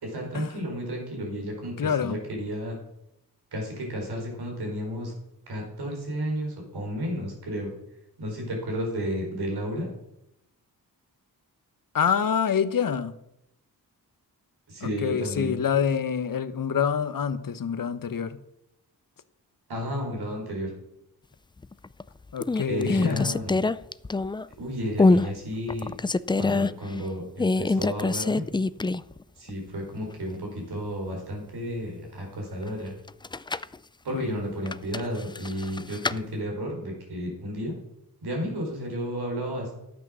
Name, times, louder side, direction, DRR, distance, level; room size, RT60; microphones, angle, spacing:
voice 1, 0.0-2.8 3.5-5.1 5.5-7.7 8.2-9.9 14.7-15.6 19.7-20.7 22.7-23.6 24.6-25.9 26.4-28.4 29.4-32.9 34.0-37.8 38.2-39.7, equal, 85° right, 4.2 m, -32 dB
voice 2, 1.8-2.2 11.9-13.1 14.8-18.4 22.3-23.3 34.1-34.4, left 7 dB, 60° left, 1.0 m, -26 dB
sound 1, 21.6-22.0 22.4-24.5 25.0-25.3 25.7-26.7 27.4-29.2 29.5-29.6 33.1-33.8 34.7-36.2, left 3 dB, 15° left, 0.3 m, -24 dB
12.0 x 8.5 x 6.2 m
cardioid pair, 65°, 38 cm